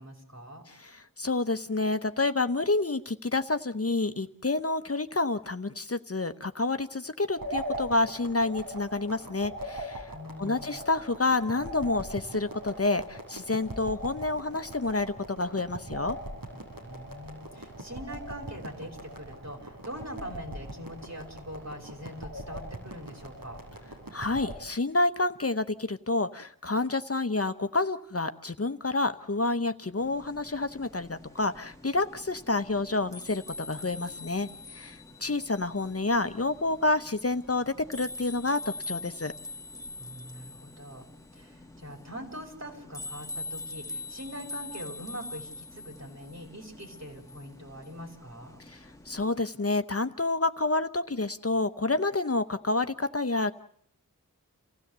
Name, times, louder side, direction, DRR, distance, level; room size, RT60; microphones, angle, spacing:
voice 1, 0.0-0.6 10.1-10.8 16.8-23.6 40.0-41.1 41.3-48.6, equal, 50° right, 1 dB, 6.0 m, -43 dB
voice 2, 0.7-10.1 10.4-16.2 24.1-39.3 48.7-53.5, left 2 dB, 45° left, 10 dB, 1.0 m, -29 dB
sound 1, 7.4-24.6, right 1 dB, 85° right, 7.2 m, -41 dB
sound 2, 30.0-49.3, left 3 dB, 10° left, 1.8 m, -44 dB
29.0 x 16.0 x 8.1 m, 0.63 s
wide cardioid pair, 55°, 34 cm